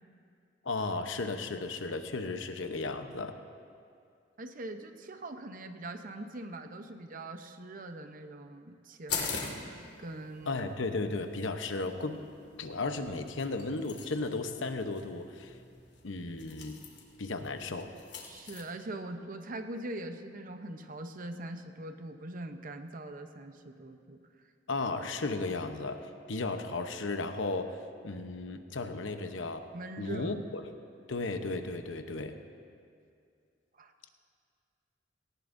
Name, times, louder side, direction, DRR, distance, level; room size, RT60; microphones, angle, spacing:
voice 1, 0.6-3.3 10.5-12.2 12.6-15.5 16.0-16.8 17.2-17.9 24.7-27.8 28.0-29.7 30.0-30.6 31.1-32.4, left 3 dB, 85° left, 7 dB, 0.9 m, -35 dB
voice 2, 4.4-9.5 10.0-10.6 18.2-24.2 29.7-30.4 33.8-34.1, right 2 dB, 45° right, 7 dB, 0.8 m, -42 dB
sound 1, 9.1-18.6, left 5 dB, 65° left, 2.0 m, -43 dB
18.0 x 18.0 x 2.7 m, 2.3 s
head